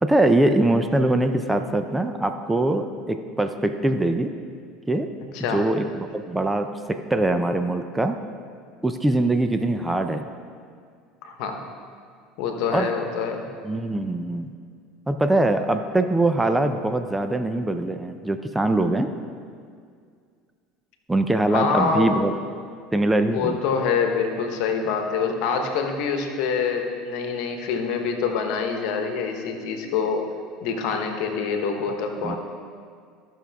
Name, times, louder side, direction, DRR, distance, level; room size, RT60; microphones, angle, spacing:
voice 1, 0.0-4.3 4.9-5.1 5.5-8.2 8.8-10.2 12.7-12.9 13.6-14.5 15.1-19.1 21.1-22.3 22.9-23.6 32.2-32.4, right 2 dB, 10° right, 8 dB, 0.5 m, -22 dB
voice 2, 5.3-5.6 11.2-11.6 12.4-13.5 21.5-22.2 23.3-30.3 30.6-32.4, left 5 dB, 65° left, 4 dB, 1.1 m, -25 dB
13.5 x 6.2 x 3.5 m, 2.2 s
hypercardioid pair, 85°, 0 cm